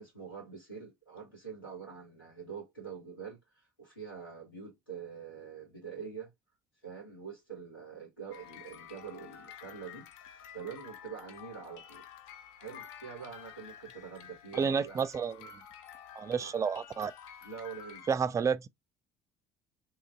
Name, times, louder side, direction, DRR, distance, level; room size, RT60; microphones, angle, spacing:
voice 1, 0.0-6.3 6.8-12.1 12.6-15.1 16.3-16.6 17.4-18.1, right 6 dB, 90° left, 1.9 m, -45 dB
sound 1, 8.3-18.2, left 8 dB, 65° left, 0.5 m, -51 dB
voice 2, 14.5-15.5 16.2-17.1 18.1-18.7, right 6 dB, 30° right, 0.3 m, -30 dB
3.0 x 2.6 x 3.4 m
figure-of-eight pair, 60°, 11 cm